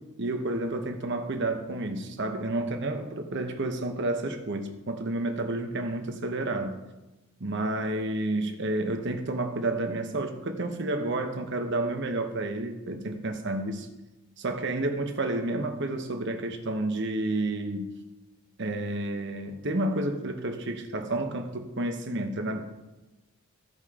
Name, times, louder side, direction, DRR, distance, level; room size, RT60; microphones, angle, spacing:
voice 1, 0.2-6.8 7.4-13.9 14.4-17.9 18.6-22.6, right 2 dB, 55° right, 5 dB, 1.0 m, -30 dB
15.0 x 5.2 x 3.7 m, 1.0 s
head